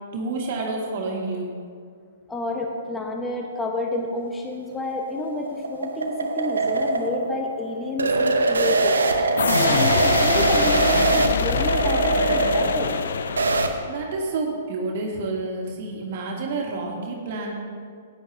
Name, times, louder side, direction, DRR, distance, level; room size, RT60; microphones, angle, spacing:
voice 1, 0.1-1.5 13.9-17.5, right 3 dB, 55° right, -1 dB, 1.9 m, -29 dB
voice 2, 2.3-12.9, left 2 dB, 10° left, 0 dB, 1.3 m, -30 dB
sound 1, 4.7-13.7, right 3 dB, 85° right, 0.9 m, -22 dB
sound 2, 9.4-14.0, left 6 dB, 70° left, 0.6 m, -25 dB
15.0 x 9.9 x 2.9 m, 2.1 s
hypercardioid pair, 125°, 0 cm